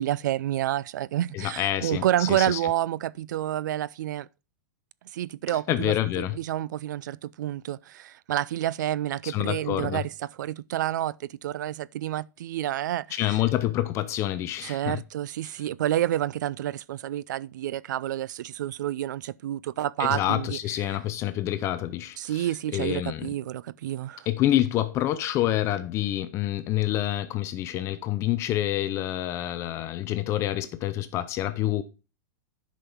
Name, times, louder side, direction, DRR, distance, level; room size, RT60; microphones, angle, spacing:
voice 1, 0.0-4.3 5.1-5.9 6.3-13.4 14.6-20.6 20.9-21.0 22.2-24.3, right 12 dB, 75° right, 0.4 m, -29 dB
voice 2, 1.3-2.6 5.7-6.4 9.2-10.0 13.1-15.0 20.0-23.3 24.3-31.8, left 13 dB, 30° left, 0.5 m, -27 dB
10.0 x 5.6 x 4.5 m
supercardioid pair, 155°, 10 cm